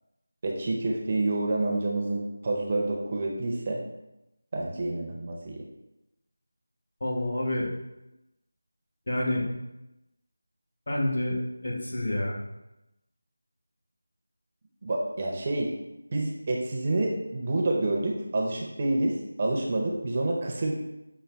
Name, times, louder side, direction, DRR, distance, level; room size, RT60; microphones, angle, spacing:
voice 1, 0.4-3.8 4.5-5.6 14.8-15.7 16.1-20.7, right 2 dB, 30° right, 0 dB, 0.5 m, -28 dB
voice 2, 7.0-7.7 9.1-9.4 10.9-12.4, left 1 dB, 55° left, -3 dB, 1.2 m, -28 dB
5.5 x 2.2 x 3.3 m, 0.93 s
figure-of-eight pair, 175°, 0 cm